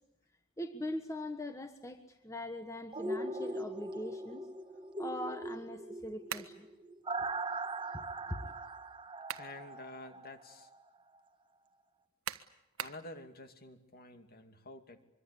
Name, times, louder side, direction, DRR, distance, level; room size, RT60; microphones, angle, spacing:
voice 1, 0.6-4.5 5.0-6.7 7.2-7.3 7.9-8.5, left 1 dB, 15° left, 7 dB, 1.4 m, -42 dB
sound 1, 2.9-10.8 11.2-11.3, right 2 dB, 25° right, 1.4 m, -40 dB
sound 2, 6.3-6.6 8.9-9.6 10.1-10.2 12.3-13.1, right 9 dB, 80° right, 1.3 m, -41 dB
voice 2, 9.4-10.7 12.8-15.0, left 2 dB, 45° left, 7 dB, 2.6 m, -49 dB
25.0 x 24.0 x 8.4 m, 0.92 s
head